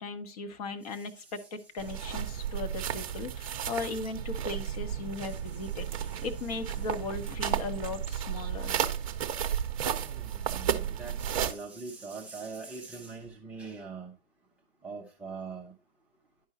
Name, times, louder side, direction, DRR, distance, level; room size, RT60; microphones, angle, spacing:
voice 1, 0.0-8.8, left 3 dB, 40° left, 1.0 m, -38 dB
sound 1, 1.8-11.5, right 9 dB, 35° right, 0.8 m, -33 dB
voice 2, 10.0-14.1 14.8-15.7, right 4 dB, 5° right, 0.5 m, -42 dB
10.5 x 5.4 x 2.8 m
figure-of-eight pair, 120°, 31 cm